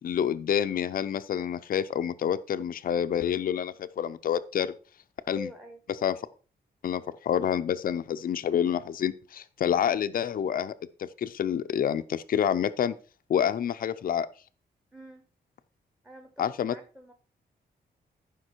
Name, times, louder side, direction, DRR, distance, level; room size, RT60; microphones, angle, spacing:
voice 1, 0.0-4.7 5.3-5.5 6.0-6.1 6.8-10.7 11.0-13.0 13.3-14.3 16.4-16.7, left 9 dB, 55° left, 11 dB, 0.6 m, -28 dB
voice 2, 5.2-5.8 14.9-15.3 16.0-17.1, equal, 5° right, 6 dB, 1.2 m, -45 dB
14.0 x 5.8 x 4.5 m, 0.37 s
wide cardioid pair, 165°, 17 cm